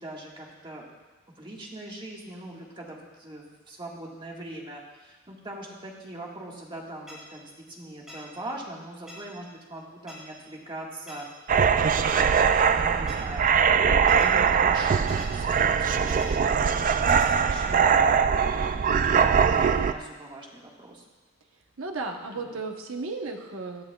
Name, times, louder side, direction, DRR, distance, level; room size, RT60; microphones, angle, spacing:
voice 1, 0.0-0.8 1.4-11.3 12.7-21.0 22.3-22.5, right 1 dB, 25° right, -2 dB, 1.7 m, -41 dB
sound 1, 7.1-7.2 8.1-8.2 9.1-9.2 10.1-10.2 11.1-11.2 12.1-12.2 13.1-13.2 14.1-14.3 15.1-15.3 16.1-16.3 17.1-17.3, left 1 dB, 5° right, 3.0 m, -43 dB
sound 2, 11.5-19.9, right 6 dB, 40° right, 0.4 m, -22 dB
voice 2, 21.8-23.8, right 3 dB, 75° right, 2 dB, 1.1 m, -34 dB
17.0 x 10.5 x 2.4 m, 1.2 s
head